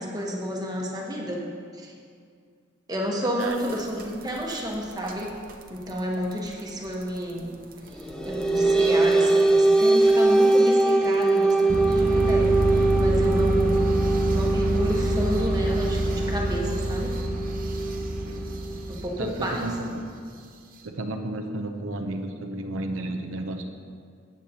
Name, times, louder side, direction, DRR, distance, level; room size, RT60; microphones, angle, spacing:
voice 1, 0.0-1.4 1.7-1.9 2.9-5.3 5.7-7.5 7.9-13.8 14.3-17.1 18.9-19.6, equal, 20° right, -1 dB, 1.2 m, -31 dB
voice 2, 3.2-3.6 18.2-18.5 19.2-20.0 20.8-23.6, right 2 dB, 80° right, 4 dB, 0.7 m, -32 dB
sound 1, 3.4-4.5 4.9-5.1 5.5-5.7 6.0-6.1 6.3-6.4 7.0-7.1 7.9-8.0 8.4-8.5 9.8-9.9 10.5-10.6 11.7-20.0, equal, 45° right, 0.7 m, -27 dB
sound 2, 8.0-18.9, right 2 dB, 5° left, 0.5 m, -22 dB
13.5 x 9.1 x 2.9 m, 2.2 s
head